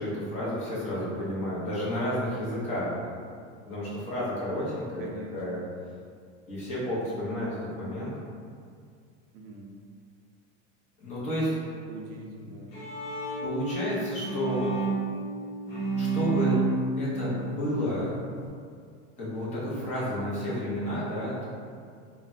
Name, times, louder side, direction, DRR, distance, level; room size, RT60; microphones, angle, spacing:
voice 1, 0.0-2.9 3.6-5.7 6.5-8.1 11.0-11.5 13.4-14.7 16.0-16.5 17.0-18.1 19.2-21.5, equal, 20° left, -8 dB, 0.6 m, -31 dB
voice 2, 5.0-5.4 9.3-9.7 11.9-12.7, right 2 dB, 50° right, 0 dB, 0.4 m, -43 dB
Bowed string instrument, 12.4-18.5, right 3 dB, 55° left, 1.0 m, -31 dB
3.1 x 2.2 x 2.5 m, 2.2 s
supercardioid pair, 165°, 38 cm